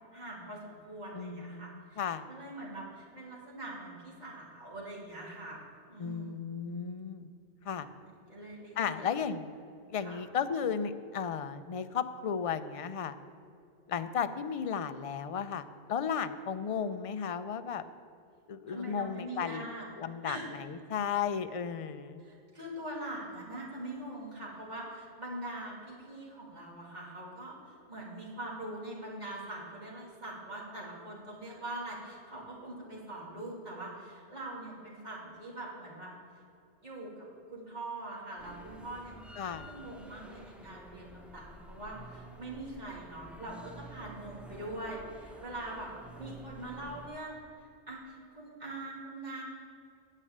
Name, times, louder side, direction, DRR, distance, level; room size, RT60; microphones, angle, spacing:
voice 1, 0.1-5.6 5.9-6.6 7.6-8.0 8.3-9.0 10.0-10.2 18.7-19.8 20.2-20.5 22.2-36.1 36.8-37.1 37.5-45.9 46.2-49.4, right 1 dB, 40° right, -5 dB, 3.0 m, -43 dB
voice 2, 1.1-2.3 6.0-7.3 7.6-7.9 8.8-9.5 9.9-13.1 13.9-17.8 18.5-19.7 20.0-22.2 39.4-39.7, left 7 dB, 50° left, 11 dB, 0.4 m, -34 dB
sound 1, 38.4-47.1, right 1 dB, ahead, 0.7 m, -50 dB
9.9 x 6.6 x 8.6 m, 2.5 s
omnidirectional pair, 1.2 m